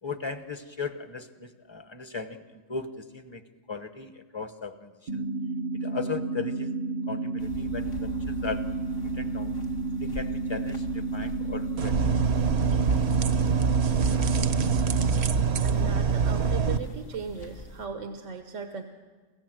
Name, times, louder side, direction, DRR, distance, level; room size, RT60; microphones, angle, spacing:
voice 1, 0.0-3.4 3.7-5.3 5.8-6.8 7.1-8.6 9.1-9.6 10.0-12.0, left 5 dB, 25° left, 9 dB, 1.0 m, -37 dB
sound 1, 5.1-15.1, right 3 dB, 45° right, 0.7 m, -31 dB
sound 2, 7.4-17.9, left 1 dB, 70° left, 2.9 m, -43 dB
sound 3, 11.8-16.8, right 5 dB, 60° right, 1.1 m, -24 dB
voice 2, 15.6-18.8, right 5 dB, 85° right, 5 dB, 1.5 m, -37 dB
26.5 x 15.5 x 7.8 m, 1.4 s
omnidirectional pair, 1.3 m